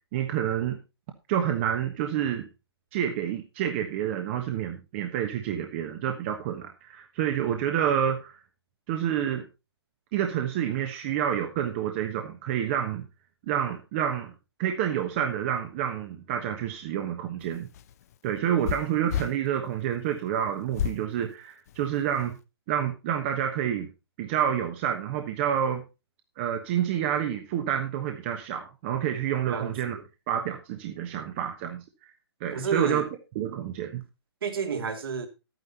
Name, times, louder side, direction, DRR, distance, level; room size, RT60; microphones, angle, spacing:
voice 1, 0.1-0.8 1.3-2.5 2.9-8.4 8.9-9.4 10.1-13.0 13.5-14.3 14.6-17.7 18.2-22.4 22.7-23.9 24.2-25.8 26.4-30.0 30.3-31.8 32.4-33.0 33.3-34.0, right 9 dB, 30° right, 1.2 m, -28 dB
sound 1, 17.4-19.3 20.7-21.0 21.7-22.3, left 9 dB, 35° left, 0.7 m, -32 dB
voice 2, 29.5-30.0 32.5-33.1 34.4-35.3, right 6 dB, 60° right, 2.5 m, -30 dB
11.0 x 9.3 x 4.1 m
hypercardioid pair, 150°, 14 cm